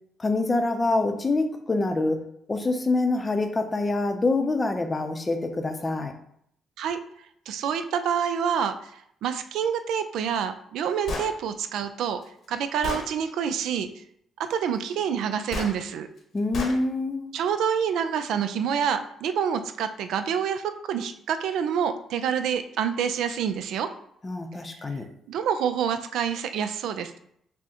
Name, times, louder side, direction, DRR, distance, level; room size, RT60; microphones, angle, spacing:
voice 1, 0.2-2.2 2.5-6.1 16.3-17.3 24.2-25.1, left 2 dB, 25° left, 6 dB, 0.5 m, -25 dB
voice 2, 7.5-8.9 9.2-12.2 12.5-13.9 14.4-16.1 17.3-23.9 25.3-27.2, right 7 dB, 80° right, 9 dB, 0.3 m, -27 dB
Gunshot gunfire, 11.1-11.3 12.2-12.3 12.8-13.1 15.5-15.7 16.5-16.8, left 2 dB, 65° left, 0.8 m, -31 dB
6.0 x 2.1 x 2.9 m, 0.70 s
cardioid pair, 90°, 0 cm